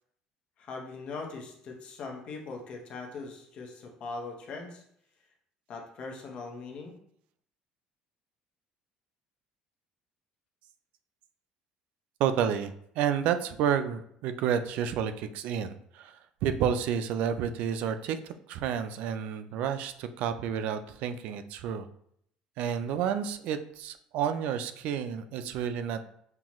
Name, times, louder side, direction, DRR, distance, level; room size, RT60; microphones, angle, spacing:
voice 1, 0.6-4.8 5.7-7.0, left 3 dB, 45° left, 1 dB, 0.8 m, -40 dB
voice 2, 12.2-18.2 18.5-21.9 22.6-26.0, right 8 dB, 70° right, 10 dB, 0.4 m, -30 dB
5.7 x 2.4 x 3.0 m, 0.69 s
cardioid pair, 140°, 2 cm